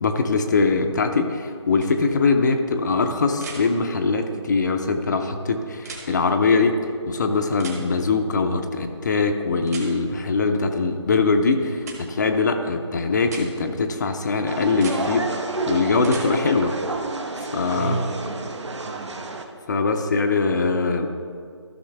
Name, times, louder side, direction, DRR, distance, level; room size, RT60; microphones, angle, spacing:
voice 1, 0.0-16.7 17.4-18.0 19.7-21.1, left 4 dB, 40° left, 5 dB, 0.6 m, -22 dB
sound 1, 1.8-1.9 3.4-3.6 5.8-6.1 7.6-7.8 9.7-9.9 11.8-12.0 13.2-13.5 14.7-15.0 16.0-16.3 18.3-18.4, right 5 dB, 35° right, 1.2 m, -37 dB
sound 2, 14.5-19.4, right 3 dB, 70° right, 1.0 m, -30 dB
voice 2, 17.7-19.3, right 3 dB, 20° right, 1 dB, 0.6 m, -31 dB
14.0 x 6.2 x 3.4 m, 2.2 s
figure-of-eight pair, 155°, 15 cm